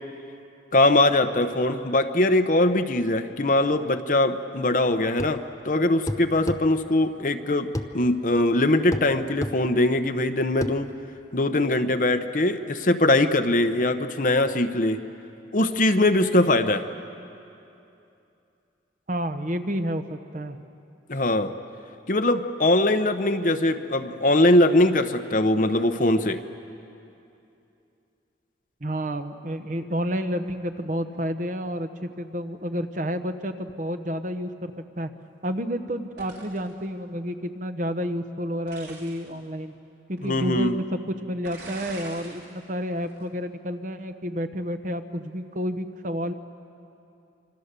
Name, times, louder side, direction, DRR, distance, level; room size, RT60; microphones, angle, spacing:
voice 1, 0.7-7.7 7.9-10.9 11.3-15.0 15.5-16.9 21.1-21.5 22.1-26.4 40.2-40.8, left 1 dB, 45° left, 8 dB, 0.9 m, -21 dB
sound 1, 5.2-5.4 6.1-6.6 7.8-7.9 8.9-9.1 9.4-9.6 10.6-10.8, left 1 dB, 15° left, 0.6 m, -30 dB
voice 2, 19.1-20.6 28.8-35.1 35.4-39.7 40.1-46.3, equal, 40° right, 8 dB, 1.0 m, -30 dB
sound 2, 36.2-36.7 38.7-39.3 40.2-40.3 41.4-42.5 42.9-43.2, right 2 dB, 65° right, 5.2 m, -42 dB
26.5 x 26.5 x 6.8 m, 2.7 s
head